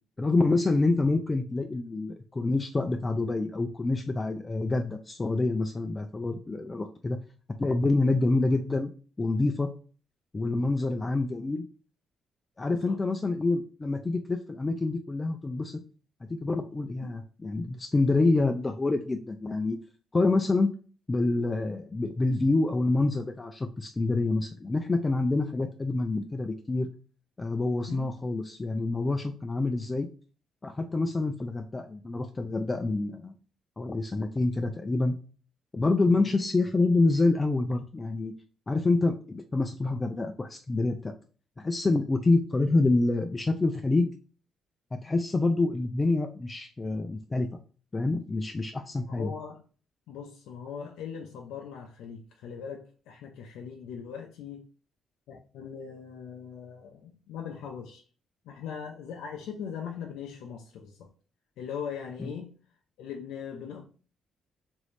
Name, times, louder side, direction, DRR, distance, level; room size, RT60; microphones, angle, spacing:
voice 1, 0.2-7.2 7.6-8.9 9.2-9.7 10.3-11.6 12.6-15.8 16.3-19.8 20.1-20.7 21.1-26.9 27.4-30.1 30.6-33.3 33.8-35.1 35.7-38.3 38.7-41.1 41.6-44.1 44.9-47.5 47.9-49.3 62.2-62.3, left 2 dB, 25° left, 0.3 m, -27 dB
voice 2, 12.7-13.0 17.0-17.1 27.9-28.1 36.1-36.3 49.1-49.6 50.1-54.7 55.3-58.0 58.5-61.1 61.6-62.5 63.0-63.9, left 7 dB, 90° left, 0.4 m, -40 dB
3.0 x 2.6 x 3.2 m
cardioid pair, 90°, 0 cm